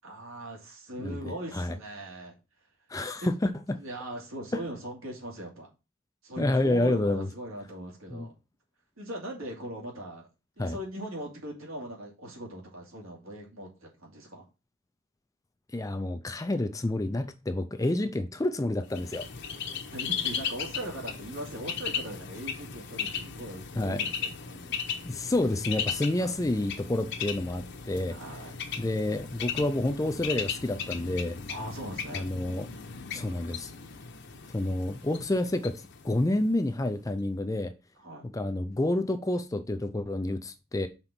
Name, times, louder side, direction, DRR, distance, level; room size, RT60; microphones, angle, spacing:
voice 1, 0.0-2.3 3.2-3.3 3.8-5.7 6.2-8.3 9.0-10.3 10.6-14.5 19.9-24.6 26.2-26.4 28.1-28.6 31.5-32.3 38.0-38.3, right 1 dB, 70° right, 2.6 m, -40 dB
voice 2, 1.0-1.8 2.9-3.8 4.5-4.6 6.4-7.3 8.1-8.3 10.6-10.8 15.7-19.3 23.8-24.0 25.0-28.2 28.8-31.4 32.1-32.7 33.1-33.7 34.5-37.7 38.3-40.9, left 1 dB, 15° left, 0.4 m, -29 dB
Bird, 18.9-36.7, left 7 dB, 55° left, 0.9 m, -37 dB
5.8 x 3.9 x 5.9 m
head